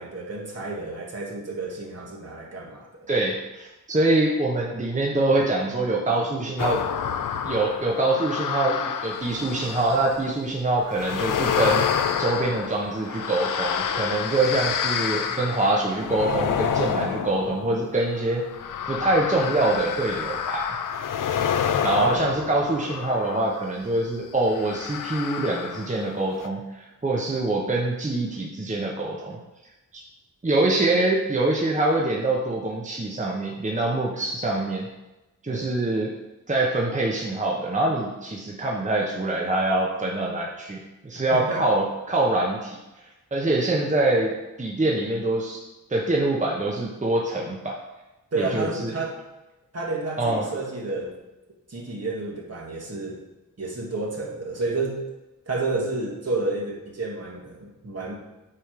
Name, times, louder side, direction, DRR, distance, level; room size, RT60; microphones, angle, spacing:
voice 1, 0.0-3.1 15.1-15.4 35.5-35.7 41.3-41.6 48.3-49.2 49.7-51.1 51.7-53.2 53.6-55.0 55.5-58.1, right 3 dB, 50° right, -2 dB, 1.7 m, -30 dB
voice 2, 3.1-6.8 7.4-18.4 18.9-20.8 21.8-29.4 29.9-30.0 30.4-34.9 35.4-36.1 36.5-42.8 43.3-44.3 44.6-45.6 45.9-47.8 48.3-48.9 50.2-50.5, right 2 dB, 20° right, -2 dB, 1.0 m, -24 dB
sound 1, 6.6-10.3 10.9-23.7 24.5-26.1 26.4-26.5, left 8 dB, 70° left, 0.5 m, -28 dB
8.6 x 3.2 x 5.1 m, 1.0 s
wide cardioid pair, 80°, 33 cm